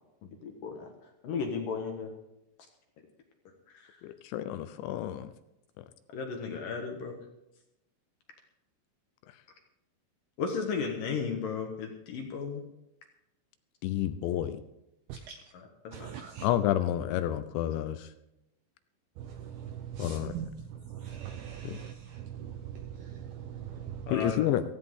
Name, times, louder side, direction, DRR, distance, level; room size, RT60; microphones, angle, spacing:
voice 1, 0.2-0.9 1.2-2.1 3.7-4.0 6.1-7.2 10.4-12.6 15.5-16.2 24.1-24.5, left 5 dB, 60° left, 2.5 m, -35 dB
voice 2, 4.0-5.3 13.8-14.6 16.4-18.1 20.0-20.3 21.6-21.8 24.1-24.6, left 12 dB, 80° left, 2.9 m, -30 dB
voice 3, 15.9-16.5 19.2-20.5 20.9-24.1, right 9 dB, 80° right, 2.2 m, -41 dB
16.5 x 15.5 x 3.7 m
omnidirectional pair, 5.5 m